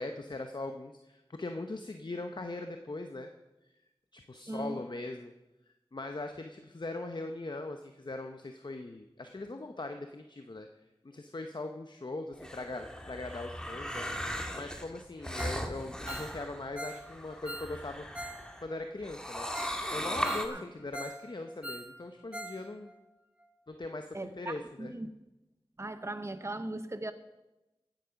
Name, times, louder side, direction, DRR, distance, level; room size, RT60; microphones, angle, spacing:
voice 1, 0.0-3.3 4.1-5.3 5.9-10.7 11.0-14.1 14.5-18.1 18.6-19.5 19.9-22.9 23.7-24.9, left 2 dB, 50° left, 6 dB, 0.8 m, -40 dB
voice 2, 4.5-4.8 20.5-20.6 24.1-24.5 24.8-25.1 25.8-27.1, right 2 dB, 30° right, 10 dB, 0.8 m, -38 dB
sound 1, 12.3-18.6 19.0-20.5, equal, 10° left, 1.7 m, -38 dB
Ringtone, 15.4-15.7 15.9-18.4 18.7-18.8 19.2-19.3 19.5-19.8 20.1-21.2 21.5-22.6 22.9-23.0 23.4-23.5, right 1 dB, 15° right, 1.4 m, -42 dB
15.5 x 9.1 x 5.8 m, 1.0 s
wide cardioid pair, 45°, 10 cm